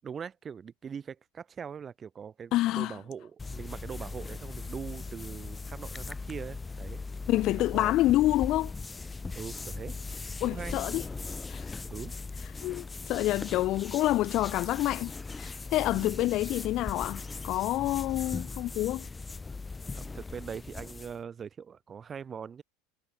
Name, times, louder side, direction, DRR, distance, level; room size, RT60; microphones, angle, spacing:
voice 1, 0.0-7.0 7.3-8.0 9.3-10.0 10.4-10.8 11.9-12.1 15.8-16.2 18.3-18.4 19.9-22.6, right 7 dB, 20° right, 7.6 m, -42 dB
voice 2, 2.5-2.9 7.3-8.7 10.4-11.0 11.5-11.7 12.6-15.1 15.4-19.0, left 16 dB, 40° left, 1.2 m, -27 dB
sound 1, 3.4-21.2, left 3 dB, 10° left, 0.7 m, -39 dB
supercardioid pair, 160°, 0 cm